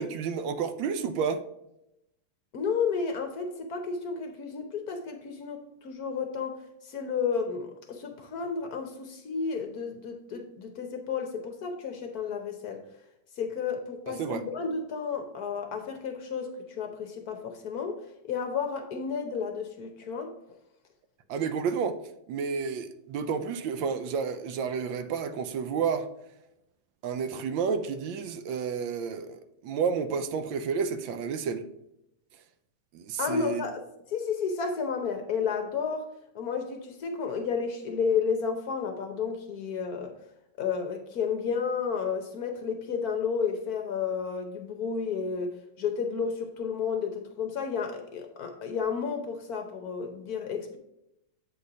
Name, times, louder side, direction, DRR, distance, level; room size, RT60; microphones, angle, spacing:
voice 1, 0.0-1.4 14.1-14.4 21.3-22.0 22.3-26.1 27.0-31.6 32.9-33.6, right 6 dB, 75° right, 1.4 m, -30 dB
voice 2, 2.5-6.6 6.8-12.8 13.4-18.0 18.2-20.3 33.2-33.8 34.1-36.1 36.3-40.1 40.6-50.8, left 6 dB, 60° left, 1.2 m, -32 dB
8.0 x 4.2 x 4.7 m
omnidirectional pair, 2.1 m